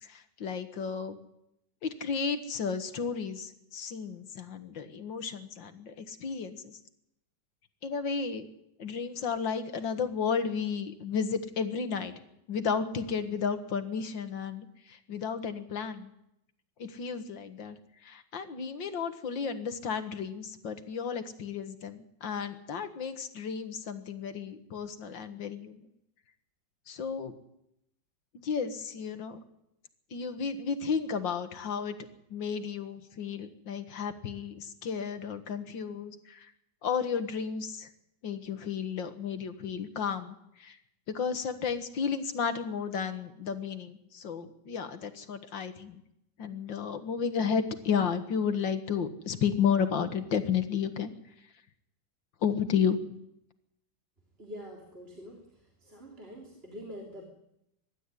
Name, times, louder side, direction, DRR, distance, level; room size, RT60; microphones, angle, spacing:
voice 1, 0.0-1.2 1.8-6.8 7.8-8.5 8.8-12.1 12.5-16.1 16.8-17.8 18.0-25.9 26.9-27.4 28.4-29.4 30.1-32.0 32.3-36.5 36.8-37.9 38.2-40.8 41.1-46.0 46.4-51.1 52.4-53.1, left 6 dB, 75° left, 9 dB, 2.3 m, -33 dB
voice 2, 54.4-55.4 55.8-57.2, equal, 30° right, -2 dB, 3.9 m, -45 dB
23.5 x 12.5 x 9.9 m, 0.81 s
omnidirectional pair, 2.0 m